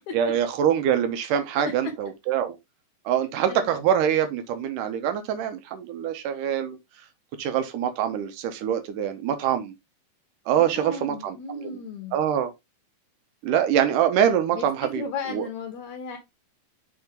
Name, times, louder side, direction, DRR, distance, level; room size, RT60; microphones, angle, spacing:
voice 1, 0.1-2.6 3.1-6.8 7.4-9.7 10.5-11.8 12.1-12.5 13.4-15.0 15.3-15.5, right 9 dB, 80° right, 2.6 m, -24 dB
voice 2, 10.5-12.2 14.5-16.2, left 4 dB, 70° left, 2.2 m, -35 dB
6.4 x 3.5 x 5.1 m
omnidirectional pair, 3.8 m